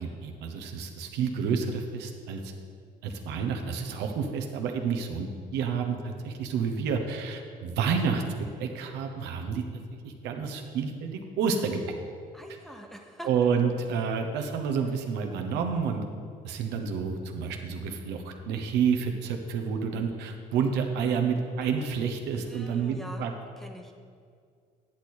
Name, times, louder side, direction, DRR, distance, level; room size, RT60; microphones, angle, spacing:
voice 1, 0.0-2.5 3.0-9.6 10.0-11.8 13.2-16.0 16.4-23.3, right 6 dB, 85° right, 4 dB, 0.9 m, -29 dB
voice 2, 12.3-13.3 22.4-23.3 23.6-23.9, equal, ahead, 2 dB, 0.9 m, -43 dB
10.0 x 6.4 x 4.3 m, 2.2 s
cardioid pair, 110°, 17 cm